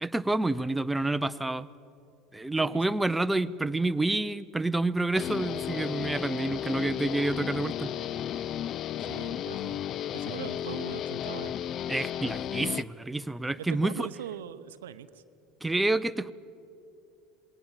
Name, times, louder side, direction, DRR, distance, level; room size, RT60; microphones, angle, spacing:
voice 1, 0.0-1.7 2.3-7.9 11.9-14.1 15.6-16.3, right 2 dB, 10° right, 12 dB, 0.5 m, -28 dB
voice 2, 2.6-3.0 9.0-9.8 10.2-11.5 13.6-15.1, right 10 dB, 75° right, 14 dB, 0.6 m, -41 dB
Guitar, 5.2-12.8, left 10 dB, 45° left, 0.4 m, -34 dB
20.0 x 18.0 x 7.4 m, 2.6 s
hypercardioid pair, 75°, 0 cm